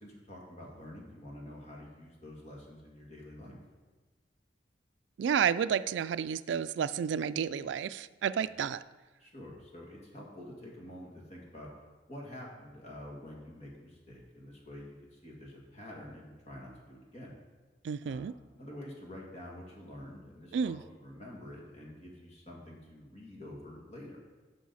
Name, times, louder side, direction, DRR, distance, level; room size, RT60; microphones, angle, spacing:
voice 1, 0.0-3.6 8.4-8.5 9.2-11.7 12.1-17.3 18.1-18.3 18.5-24.2, left 1 dB, 40° left, -2 dB, 2.1 m, -48 dB
voice 2, 5.2-8.8 17.8-18.3 20.5-20.8, right 7 dB, 85° right, 15 dB, 0.3 m, -31 dB
11.0 x 6.4 x 4.1 m, 1.2 s
head